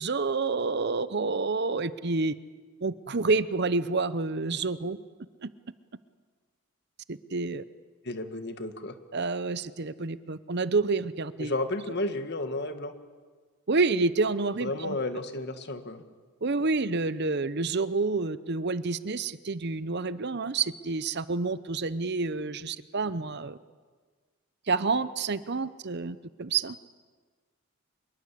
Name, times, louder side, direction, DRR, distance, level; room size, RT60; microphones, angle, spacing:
voice 1, 0.0-2.3 2.8-5.0 5.4-5.5 7.1-7.6 9.1-11.5 13.7-15.0 16.4-23.6 24.7-26.8, right 3 dB, 50° right, 15 dB, 0.8 m, -28 dB
voice 2, 8.0-8.9 11.4-12.9 14.6-16.0, left 2 dB, 50° left, 8 dB, 1.8 m, -33 dB
25.5 x 22.0 x 8.5 m, 1.5 s
head